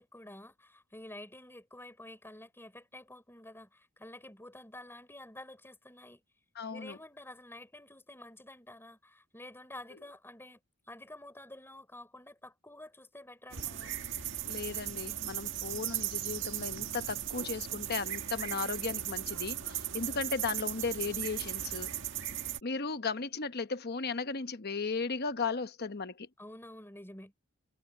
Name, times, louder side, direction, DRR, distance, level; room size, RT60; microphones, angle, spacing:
voice 1, 0.0-6.2 6.7-10.6 10.9-14.0 26.4-27.3, left 1 dB, 10° left, 4.3 m, -50 dB
voice 2, 6.5-7.0 14.5-21.9 22.6-26.3, left 4 dB, 45° left, 1.0 m, -36 dB
sound 1, 13.5-22.6, right 11 dB, 55° right, 1.9 m, -37 dB
head